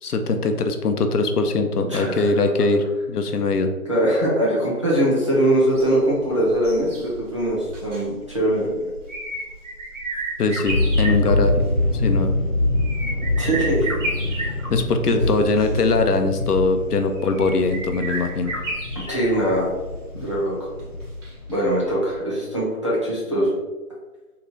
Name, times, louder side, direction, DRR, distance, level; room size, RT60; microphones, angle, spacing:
voice 1, 0.0-3.7 10.4-11.5 11.9-12.3 14.7-18.5, left 3 dB, 85° left, 6 dB, 0.7 m, -21 dB
voice 2, 1.9-2.3 3.9-8.9 13.4-14.0 15.0-15.2 19.1-19.7 20.1-20.5 21.5-23.6, right 1 dB, 20° right, -8 dB, 0.7 m, -22 dB
sound 1, 5.6-21.6 21.9-22.0, right 2 dB, 55° right, 1.3 m, -34 dB
sound 2, 10.7-22.2, left 2 dB, 25° left, 1.5 m, -25 dB
3.2 x 2.9 x 3.7 m, 1.2 s
figure-of-eight pair, 165°, 45 cm